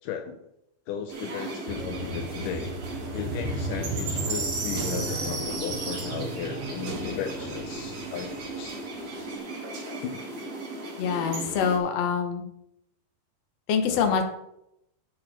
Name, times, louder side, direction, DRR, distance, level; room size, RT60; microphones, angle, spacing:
voice 1, 0.0-0.5 0.9-2.8 3.1-8.7 10.0-10.3 13.9-14.2, left 8 dB, 85° left, 6 dB, 1.8 m, -36 dB
sound 1, 1.1-11.8, right 2 dB, 45° right, 3.7 m, -35 dB
Motorcycle, 1.7-9.3, right 2 dB, 90° right, 3.4 m, -36 dB
sound 2, 3.5-8.6, right 2 dB, 70° right, 3.9 m, -44 dB
voice 2, 11.0-12.4 13.7-14.2, left 6 dB, 65° left, 5 dB, 1.7 m, -25 dB
11.0 x 7.6 x 4.3 m, 0.80 s
omnidirectional pair, 4.5 m